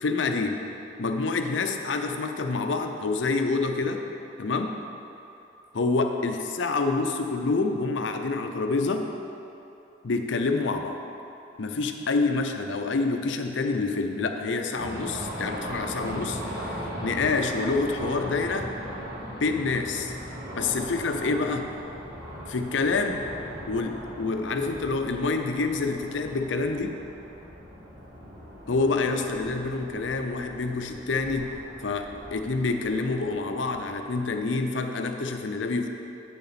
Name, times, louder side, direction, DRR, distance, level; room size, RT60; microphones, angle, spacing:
voice 1, 0.0-0.6 1.0-4.0 4.4-4.8 5.7-9.1 10.0-10.9 11.6-18.7 19.3-20.1 20.5-21.7 22.5-23.2 23.7-27.0 28.7-31.5 31.8-35.9, left 3 dB, 70° left, 5 dB, 0.6 m, -27 dB
sound 1, 14.7-34.4, equal, 55° right, 1.9 m, -39 dB
8.4 x 6.7 x 4.2 m, 2.9 s
head